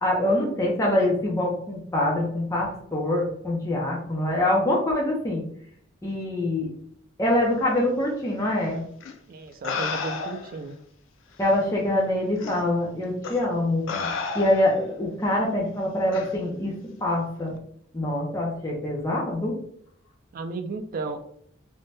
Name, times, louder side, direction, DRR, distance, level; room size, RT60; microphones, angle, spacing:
voice 1, 0.0-5.4 6.0-6.7 7.2-8.8 11.4-13.9 14.3-16.8 17.0-17.6 17.9-19.5, left 1 dB, 15° left, -3 dB, 0.5 m, -24 dB
sound 1, 9.0-9.1 9.6-10.6 11.5-11.6 12.4-12.6 13.2-13.5 13.9-14.8 16.1-16.3, left 4 dB, 80° left, 0.4 m, -31 dB
voice 2, 9.3-10.8 20.3-21.2, right 3 dB, 50° right, 7 dB, 0.3 m, -34 dB
2.6 x 2.1 x 3.2 m, 0.65 s
head